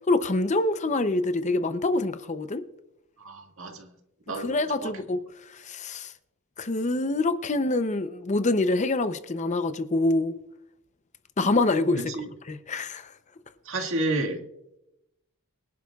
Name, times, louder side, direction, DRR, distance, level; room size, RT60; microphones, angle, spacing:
voice 1, 0.1-2.6 4.3-5.2 5.5-6.1 6.6-10.4 11.4-12.0 12.5-13.1, left 2 dB, 30° left, 0.6 m, -25 dB
voice 2, 3.2-3.9 4.3-4.5 4.8-4.9 12.2-12.3 13.7-14.4, right 2 dB, 60° right, 1.9 m, -30 dB
23.5 x 11.0 x 2.4 m
head